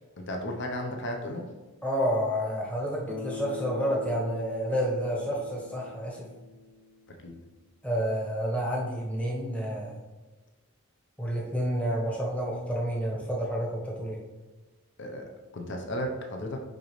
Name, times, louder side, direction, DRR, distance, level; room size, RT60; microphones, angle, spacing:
voice 1, 0.3-1.5 7.2-7.3 15.0-16.6, equal, 55° left, 2 dB, 0.8 m, -34 dB
voice 2, 1.8-6.3 7.8-10.0 11.2-14.2, equal, 5° left, -3 dB, 1.1 m, -29 dB
Bass guitar, 3.1-7.3, left 3 dB, 10° right, 0.6 m, -42 dB
10.0 x 3.9 x 3.1 m, 1.2 s
head